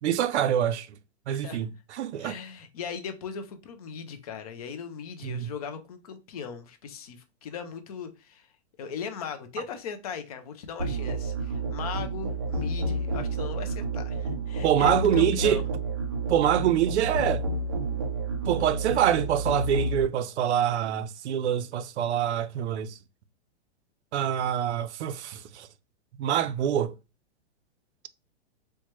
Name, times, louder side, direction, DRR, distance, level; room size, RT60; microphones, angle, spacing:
voice 1, 0.0-0.9 1.3-2.4 5.2-5.5 14.6-15.6 16.3-17.4 18.5-23.0 24.1-25.7 26.2-26.9, right 10 dB, 75° right, 0.5 m, -25 dB
voice 2, 1.3-1.6 2.2-8.5 8.8-15.6, left 7 dB, 35° left, 0.5 m, -38 dB
Musical instrument, 10.8-20.0, right 2 dB, 25° right, 0.3 m, -30 dB
4.4 x 2.2 x 3.0 m
hypercardioid pair, 165°, 34 cm